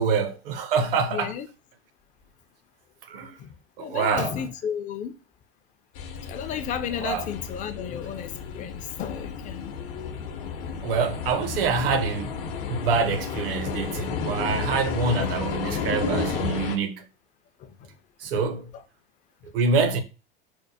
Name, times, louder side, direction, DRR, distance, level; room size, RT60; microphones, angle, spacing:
voice 1, 0.0-1.3 3.1-3.3 3.8-4.3 7.0-7.3 10.8-12.3 12.7-17.0 18.2-18.7 19.5-20.0, right 5 dB, 70° right, 0.6 m, -25 dB
voice 2, 1.1-1.5 3.4-5.2 6.2-9.7 10.9-11.0 17.6-18.0 18.3-18.5 18.7-18.8, left 8 dB, 25° left, 0.3 m, -33 dB
sound 1, 6.0-16.8, left 5 dB, 65° left, 0.7 m, -32 dB
4.3 x 2.1 x 2.6 m
hypercardioid pair, 85°, 30 cm